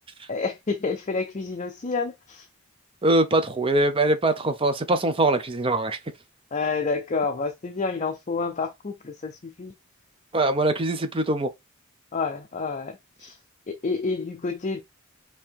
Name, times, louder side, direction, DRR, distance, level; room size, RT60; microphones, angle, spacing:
voice 1, 0.3-2.5 6.5-9.7 12.1-13.4 13.7-14.8, left 4 dB, 35° left, 0.6 m, -29 dB
voice 2, 3.0-6.0 10.3-11.5, right 2 dB, 25° right, 0.7 m, -22 dB
4.7 x 2.9 x 3.5 m
head